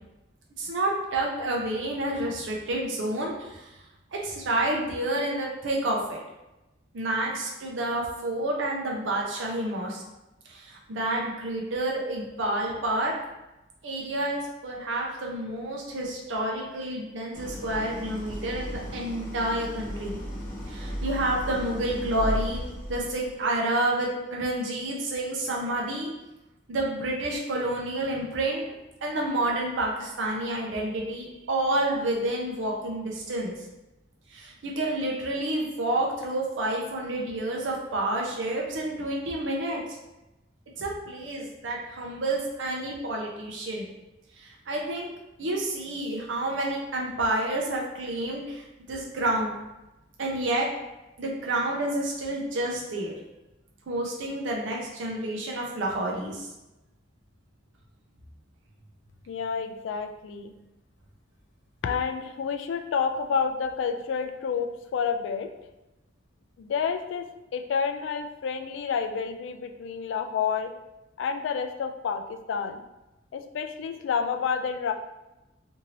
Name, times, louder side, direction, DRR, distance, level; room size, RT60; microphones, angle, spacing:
voice 1, 0.6-3.7 4.1-6.2 6.9-10.0 10.5-13.1 13.8-20.2 20.7-22.6 22.9-26.1 26.7-28.7 29.0-33.5 34.3-39.8 40.8-43.9 44.4-45.1 45.4-49.5 50.2-50.7 51.2-53.1 53.9-56.5, right 1 dB, 80° right, -2 dB, 0.5 m, -29 dB
Idling, 17.3-23.4, equal, 50° left, 0.7 m, -35 dB
voice 2, 59.3-60.5 61.8-65.5 66.6-70.7 71.2-72.8 73.3-74.9, left 6 dB, 75° left, 7 dB, 0.3 m, -29 dB
2.7 x 2.6 x 2.9 m, 0.99 s
head